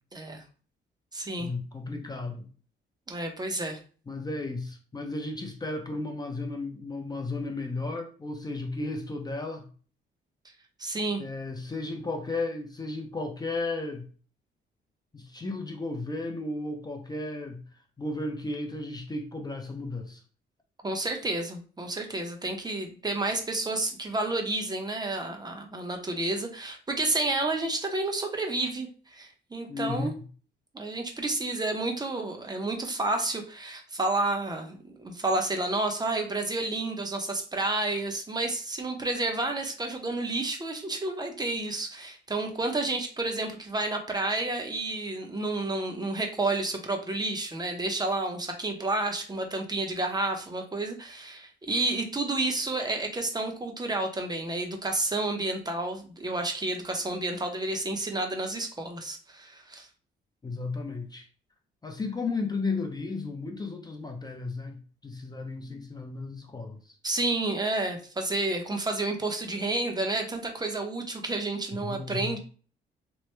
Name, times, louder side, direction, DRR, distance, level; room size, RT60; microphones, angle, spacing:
voice 1, 0.1-0.4 1.1-1.5 3.1-3.8 10.8-11.2 20.8-30.1 30.7-59.9 67.0-72.4, right 2 dB, 20° right, 0.6 m, -30 dB
voice 2, 1.4-2.5 4.1-9.7 11.2-14.1 15.1-17.6 18.0-20.2 29.7-30.2 60.4-61.3 61.8-67.0 71.7-72.4, left 3 dB, 20° left, 0.5 m, -34 dB
3.0 x 2.1 x 3.2 m
cardioid pair, 90°, 20 cm